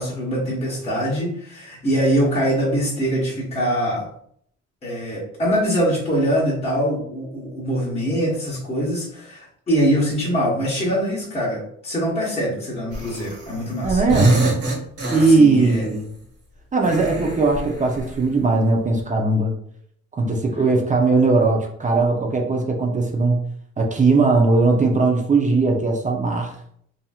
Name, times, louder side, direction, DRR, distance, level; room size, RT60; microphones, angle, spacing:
voice 1, 0.0-4.1 4.8-14.0 15.2-15.9, equal, 20° left, -7 dB, 1.1 m, -23 dB
sound 1, 12.9-13.6 13.8-15.8 16.8-18.3, right 1 dB, 55° right, 1.4 m, -25 dB
voice 2, 13.8-14.5 15.1-16.1 16.7-19.5 20.1-23.4 23.8-26.5, right 3 dB, 25° right, 2 dB, 0.6 m, -19 dB
2.9 x 2.6 x 2.3 m, 0.66 s
cardioid pair, 90°, 30 cm